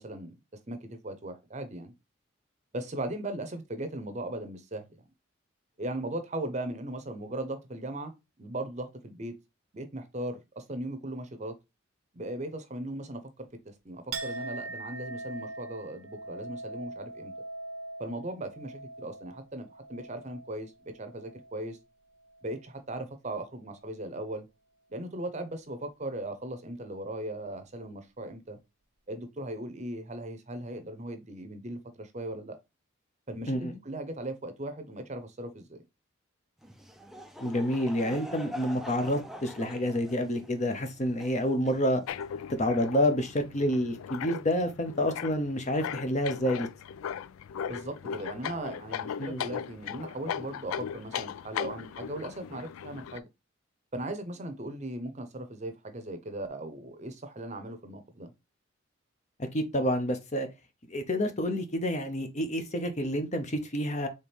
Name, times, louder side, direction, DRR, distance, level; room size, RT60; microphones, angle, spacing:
voice 1, 0.0-1.9 2.7-5.0 5.8-8.1 8.4-9.3 9.7-11.6 12.1-17.3 18.0-21.8 22.4-24.5 24.9-28.6 29.1-32.6 33.3-35.8 47.7-53.3 53.9-58.3, right 1 dB, 35° right, 0.7 m, -38 dB
Chink clink, 14.1-21.8 22.1-22.8, right 2 dB, 85° right, 0.8 m, -42 dB
Laughter / Crowd, 36.6-42.3, equal, ahead, 0.4 m, -44 dB
voice 2, 37.4-42.0 42.6-46.7 49.2-49.4 59.5-60.5 60.9-64.1, equal, 35° left, 0.7 m, -28 dB
sound 1, 42.1-53.2, left 8 dB, 90° left, 0.3 m, -38 dB
4.4 x 3.5 x 3.4 m
head